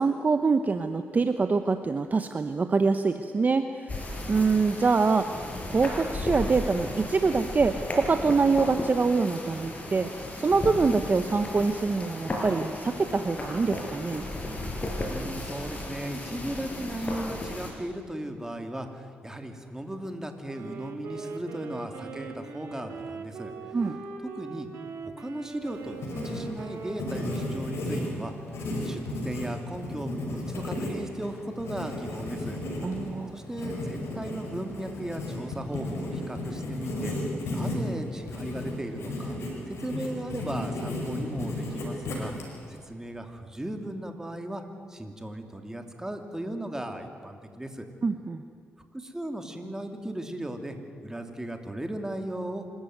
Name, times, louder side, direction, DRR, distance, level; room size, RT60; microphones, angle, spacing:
voice 1, 0.0-5.4 5.7-10.1 10.4-14.3 23.7-24.0 32.8-33.3 48.0-48.4, right 4 dB, 40° right, 8 dB, 1.0 m, -25 dB
sound 1, 3.9-17.7, left 1 dB, 35° left, 5.4 m, -35 dB
voice 2, 15.0-23.5 24.2-24.7 25.0-28.3 28.8-32.6 33.3-37.1 37.5-39.4 39.7-42.3 42.7-44.6 44.9-47.9 48.9-50.8 51.0-52.6, right 1 dB, 10° right, 5 dB, 2.8 m, -36 dB
Wind instrument woodwind instrument, 20.4-28.5, right 4 dB, 80° right, 2.6 m, -41 dB
Writing, 25.6-42.8, left 1 dB, 80° left, 5.2 m, -34 dB
26.0 x 14.0 x 9.4 m, 2.1 s
cardioid pair, 70°, 4 cm